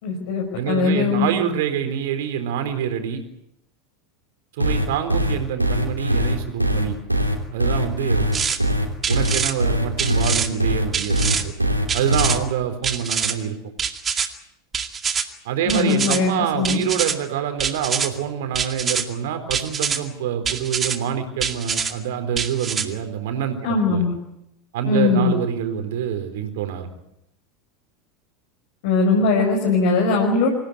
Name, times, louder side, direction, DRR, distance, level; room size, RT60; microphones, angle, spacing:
voice 1, 0.0-1.3 15.7-16.9 23.6-24.1 24.9-25.3 28.8-30.5, left 4 dB, 55° left, 0 dB, 5.3 m, -20 dB
voice 2, 0.6-3.3 4.5-7.0 7.5-8.4 9.1-11.5 11.9-13.6 15.4-24.0 24.7-26.9, right 9 dB, 55° right, 7 dB, 4.0 m, -26 dB
sound 1, 4.6-12.4, equal, 90° right, 3.2 m, -21 dB
sound 2, 8.3-8.6 9.0-9.5 10.0-10.5 10.9-11.4 11.9-12.4 12.8-13.3 13.8-14.3 14.7-15.2 15.7-16.2 16.6-17.1 17.6-18.1 18.5-19.0 19.5-20.0 20.4-21.0 21.4-21.9 22.4-22.8, right 6 dB, 25° right, 2.3 m, -25 dB
26.0 x 16.5 x 9.5 m, 0.81 s
figure-of-eight pair, 80°, 0 cm